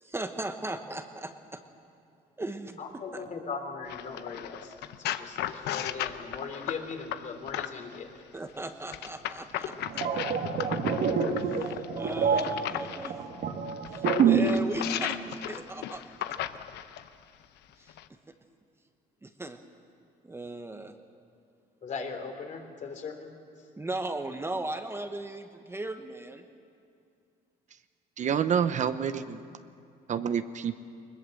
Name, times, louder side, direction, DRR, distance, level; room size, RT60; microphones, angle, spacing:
voice 1, 0.0-1.6 2.4-2.8 3.1-3.2 8.3-10.0 11.3-13.1 13.9-15.2 15.5-16.0 17.8-17.9 19.2-19.6 20.2-20.9 23.8-26.4, right 2 dB, 15° right, 6 dB, 1.1 m, -37 dB
voice 2, 2.8-8.1 21.8-23.3, left 4 dB, 45° left, 4 dB, 3.2 m, -39 dB
sound 1, 3.9-8.0 8.9-13.1 13.7-17.1 17.9-18.0, left 12 dB, 75° left, 0.8 m, -35 dB
sound 2, 9.7-14.6 14.9-15.2, right 6 dB, 65° right, 2.3 m, -26 dB
voice 3, 28.2-29.4 30.1-30.7, right 8 dB, 45° right, 11 dB, 0.8 m, -28 dB
21.0 x 20.5 x 7.7 m, 2.5 s
cardioid pair, 110°, 17 cm